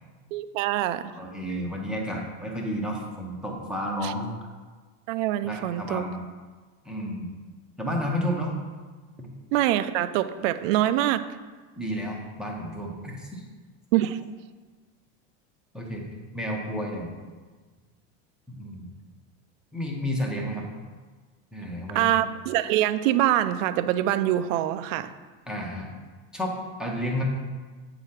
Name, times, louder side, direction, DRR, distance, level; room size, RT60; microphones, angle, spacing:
voice 1, 0.3-1.0 4.0-4.1 5.1-6.0 9.5-11.2 13.9-14.2 21.9-25.1, right 13 dB, 85° right, 12 dB, 0.6 m, -24 dB
voice 2, 1.1-4.5 5.4-6.2 6.8-7.3 7.8-8.5 9.2-9.3 11.8-13.4 15.7-16.1 16.3-17.1 18.5-18.9 19.7-20.7 21.5-22.2 25.5-25.9 26.3-27.2, equal, ahead, -2 dB, 0.8 m, -31 dB
8.6 x 5.0 x 5.7 m, 1.4 s
cardioid pair, 170°, 37 cm